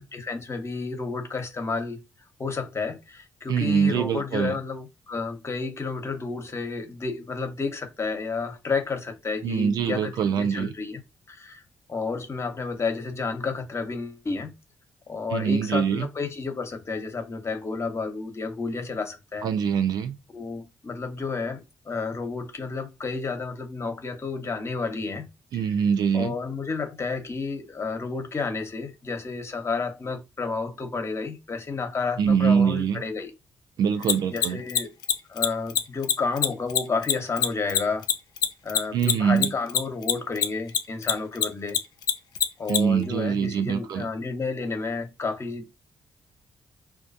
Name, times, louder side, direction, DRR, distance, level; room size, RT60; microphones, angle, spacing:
voice 1, 0.1-2.0 2.4-11.0 11.3-11.6 11.9-14.5 15.1-19.5 20.3-25.3 26.1-33.3 34.3-34.9 35.3-38.1 38.6-41.8 42.6-45.7, left 4 dB, 40° left, 0.8 m, -31 dB
voice 2, 3.5-4.6 9.4-10.7 15.3-16.1 19.4-20.1 25.5-26.3 32.2-33.0 33.8-34.6 38.9-39.5 42.7-44.1, right 7 dB, 70° right, 0.4 m, -24 dB
Mechanisms, 34.0-40.8 41.0-42.8, left 9 dB, 70° left, 0.4 m, -22 dB
2.3 x 2.1 x 2.6 m
hypercardioid pair, 45°, 7 cm